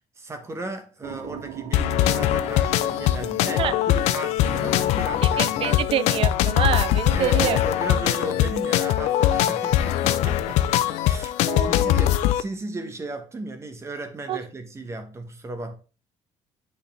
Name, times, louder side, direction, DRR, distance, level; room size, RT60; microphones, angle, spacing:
voice 1, 0.2-5.9 6.9-15.7, right 2 dB, 25° right, 1.1 m, -36 dB
sound 1, 1.0-9.4, right 9 dB, 80° right, 0.8 m, -43 dB
sound 2, 1.7-12.4, left 12 dB, 90° left, 0.5 m, -22 dB
voice 2, 5.4-7.6 11.5-12.0 14.3-14.4, right 10 dB, 55° right, 0.5 m, -26 dB
8.4 x 4.1 x 3.4 m
cardioid pair, 125°, 11 cm